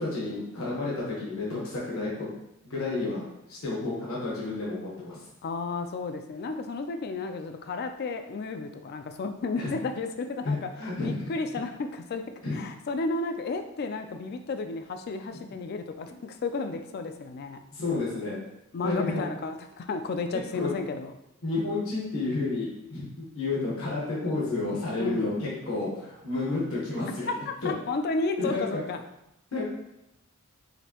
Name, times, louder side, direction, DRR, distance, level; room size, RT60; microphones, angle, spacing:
voice 1, 0.0-2.1 2.6-5.2 9.6-9.7 10.4-11.3 12.4-12.6 17.7-18.4 18.8-19.2 20.5-20.7 21.4-27.4 27.6-27.7 28.4-28.8 29.5-29.7, left 3 dB, 70° left, -6 dB, 1.2 m, -31 dB
voice 2, 5.4-17.6 18.7-21.1 25.0-25.3 27.3-29.0, left 3 dB, 45° left, 7 dB, 0.3 m, -33 dB
5.0 x 2.6 x 2.8 m, 0.86 s
head